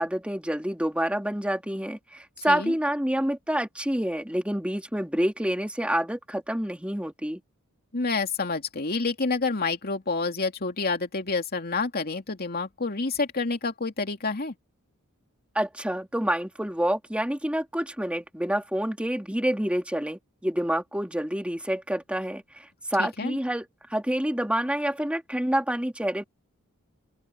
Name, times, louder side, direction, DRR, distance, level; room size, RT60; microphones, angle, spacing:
voice 1, 0.0-7.4 15.5-26.2, equal, 5° right, 2.4 m, -28 dB
voice 2, 2.4-2.7 7.9-14.5 23.0-23.4, left 3 dB, 45° left, 2.5 m, -28 dB
open air
head